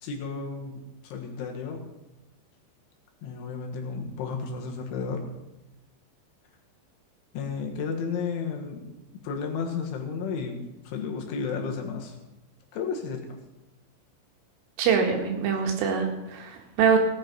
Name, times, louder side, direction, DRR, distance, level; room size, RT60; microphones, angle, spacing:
voice 1, 0.0-1.8 3.2-5.2 7.3-8.8 9.2-12.2 12.7-13.2, left 5 dB, 75° left, 2 dB, 4.0 m, -32 dB
voice 2, 14.8-17.0, right 6 dB, 85° right, 2 dB, 4.3 m, -24 dB
17.5 x 9.7 x 5.4 m, 1.0 s
omnidirectional pair, 5.6 m